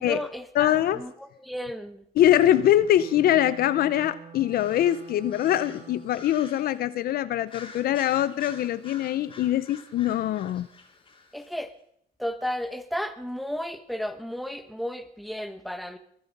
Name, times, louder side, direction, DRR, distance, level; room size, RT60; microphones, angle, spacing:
voice 1, 0.0-2.0 11.3-11.7 12.2-16.0, equal, ahead, 9 dB, 1.3 m, -33 dB
voice 2, 0.5-1.0 2.2-10.7, left 12 dB, 60° left, 15 dB, 0.7 m, -23 dB
Wind instrument woodwind instrument, 2.9-6.3, right 7 dB, 45° right, 2.1 m, -47 dB
sound 1, 4.5-6.8 7.5-11.5, left 4 dB, 30° left, 3.3 m, -48 dB
22.5 x 9.6 x 5.4 m, 0.69 s
cardioid pair, 110°, 17 cm